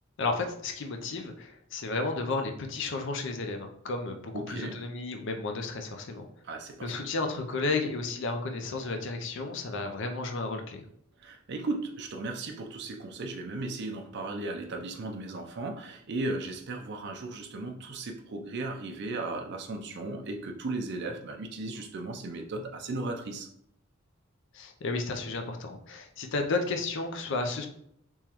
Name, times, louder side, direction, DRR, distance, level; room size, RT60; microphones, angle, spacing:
voice 1, 0.2-6.3 6.8-10.8 24.5-27.7, left 3 dB, 65° left, 5 dB, 0.5 m, -32 dB
voice 2, 4.3-4.8 6.4-7.1 11.2-23.5, right 2 dB, 60° right, 3 dB, 0.5 m, -36 dB
3.6 x 3.0 x 2.9 m, 0.70 s
head